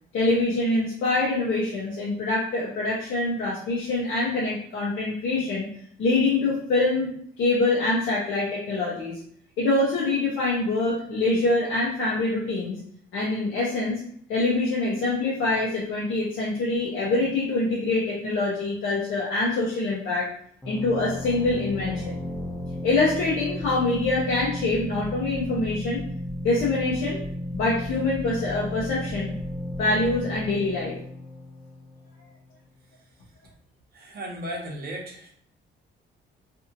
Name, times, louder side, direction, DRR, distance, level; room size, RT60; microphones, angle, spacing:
voice 1, 0.1-5.7 6.0-7.1 7.4-9.2 9.6-12.8 13.1-14.0 14.3-20.3 20.6-22.2 22.8-26.0 26.4-27.2 27.5-29.3 29.8-31.0, left 2 dB, 80° left, -6 dB, 0.8 m, -25 dB
sound 1, 20.6-32.1, left 1 dB, 5° left, 0.7 m, -34 dB
voice 2, 33.9-35.3, right 1 dB, 50° right, 0 dB, 0.9 m, -35 dB
2.7 x 2.6 x 2.5 m, 0.64 s
cardioid pair, 90°, 20 cm